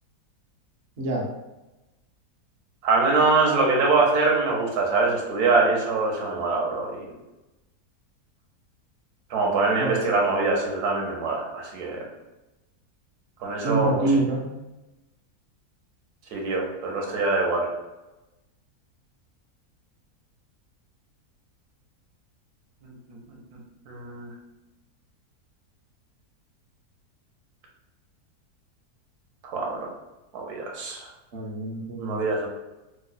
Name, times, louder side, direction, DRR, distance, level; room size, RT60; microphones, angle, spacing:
voice 1, 2.8-7.1 9.3-12.1 13.4-14.0 16.3-17.7 22.8-22.9 23.3-23.6 23.9-24.3 29.4-29.9 30.3-31.1 32.0-32.5, right 3 dB, 80° right, 0 dB, 1.2 m, -24 dB
voice 2, 13.6-14.5 31.3-32.2, right 2 dB, 55° right, -1 dB, 0.7 m, -26 dB
3.0 x 2.0 x 3.9 m, 1.0 s
omnidirectional pair, 1.7 m